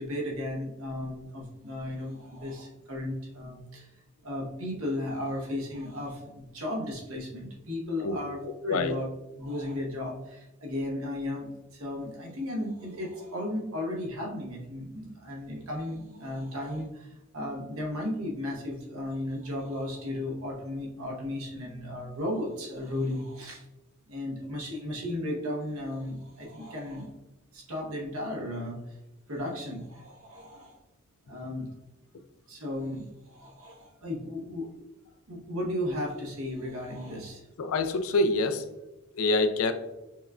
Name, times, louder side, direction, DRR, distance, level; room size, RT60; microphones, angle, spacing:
voice 1, 0.0-3.9 4.2-9.0 9.4-23.7 24.1-27.1 27.5-29.0 29.3-30.8 31.3-31.7 32.5-34.7 35.3-37.4, left 1 dB, 80° right, -1 dB, 1.0 m, -35 dB
voice 2, 37.6-38.6 39.1-39.7, left 2 dB, 75° left, 9 dB, 0.4 m, -25 dB
6.0 x 2.3 x 2.4 m, 1.0 s
head